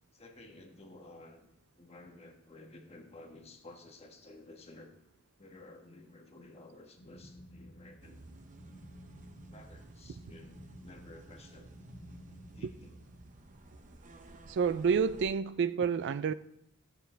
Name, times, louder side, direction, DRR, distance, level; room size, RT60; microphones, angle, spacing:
voice 1, 0.1-1.4 1.7-4.9 5.4-8.3 9.5-11.7 12.5-13.0, left 2 dB, 30° left, 1.3 m, -53 dB
sound 1, 7.0-13.3, equal, 55° left, 1.4 m, -54 dB
sound 2, 8.0-15.3, right 1 dB, 35° right, 0.8 m, -53 dB
voice 2, 14.5-16.3, right 6 dB, 55° right, 0.4 m, -29 dB
15.0 x 7.3 x 3.3 m
head